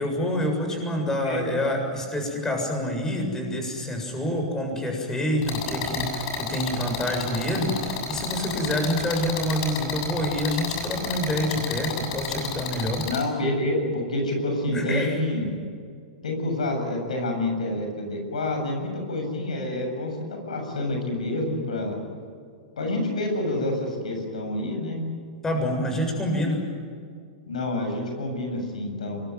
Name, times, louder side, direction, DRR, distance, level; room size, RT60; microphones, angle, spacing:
voice 1, 0.0-13.1 14.7-15.2 25.4-26.7, equal, 15° left, 3 dB, 7.4 m, -27 dB
voice 2, 1.2-1.6 13.0-15.6 16.2-22.0 22.8-25.0 27.4-29.2, left 1 dB, 85° left, 3 dB, 7.5 m, -28 dB
sound 1, 5.4-13.2, left 6 dB, 50° left, 7.2 m, -31 dB
24.5 x 22.0 x 9.3 m, 2.2 s
hypercardioid pair, 110°, 4 cm